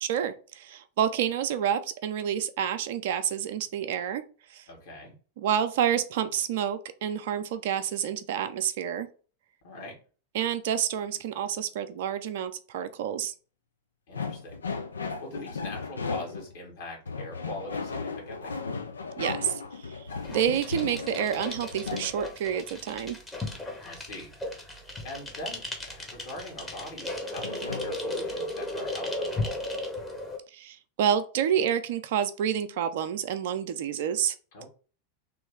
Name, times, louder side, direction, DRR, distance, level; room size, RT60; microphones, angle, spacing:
voice 1, 0.0-4.2 4.5-4.6 5.4-9.1 10.3-13.3 19.2-19.5 20.3-23.2 30.5-34.3, right 9 dB, 55° right, 10 dB, 0.4 m, -28 dB
voice 2, 4.7-5.1 9.6-9.9 14.1-14.6 15.2-18.6 23.8-24.3 25.0-29.6 34.5-34.7, left 1 dB, 55° left, -1 dB, 1.7 m, -42 dB
sound 1, 14.1-16.6 17.1-22.1 27.4-28.0, left 4 dB, 70° left, 0.4 m, -36 dB
sound 2, 20.1-30.4, left 1 dB, 10° left, 0.9 m, -36 dB
3.1 x 3.0 x 3.5 m, 0.38 s
figure-of-eight pair, 90°, 0 cm